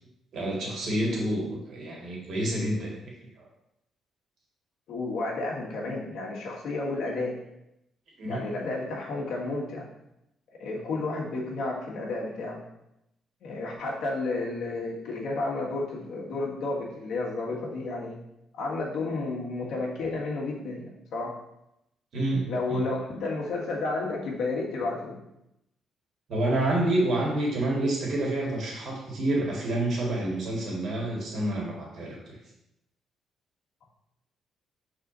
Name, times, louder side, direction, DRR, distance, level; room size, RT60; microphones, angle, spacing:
voice 1, 0.3-2.9 8.2-8.4 22.1-22.8 26.3-32.4, right 1 dB, 65° right, -3 dB, 2.0 m, -28 dB
voice 2, 4.9-7.4 8.3-9.9 10.6-12.6 13.4-18.2 18.5-21.3 22.5-25.2, left 3 dB, 80° left, -2 dB, 1.6 m, -31 dB
5.8 x 4.2 x 3.9 m, 0.85 s
cardioid pair, 90°, 0 cm